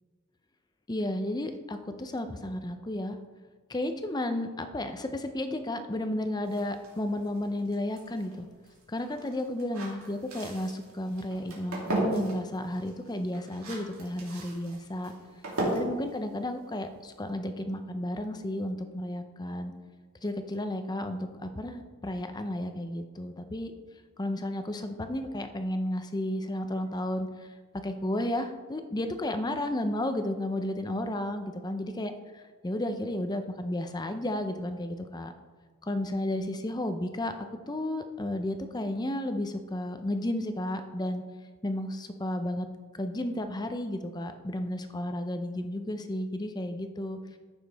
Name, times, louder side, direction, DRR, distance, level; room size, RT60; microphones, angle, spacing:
voice 1, 0.9-3.2 3.7-8.5 8.9-15.1 15.7-19.7 20.2-23.7 24.2-27.5 27.8-35.3 35.8-37.4 37.7-41.2 41.6-42.7 43.0-47.2, left 1 dB, 20° left, 8 dB, 0.6 m, -33 dB
sound 1, 6.4-17.3, right 1 dB, 80° right, 2.6 m, -37 dB
14.5 x 6.3 x 3.4 m, 1.4 s
head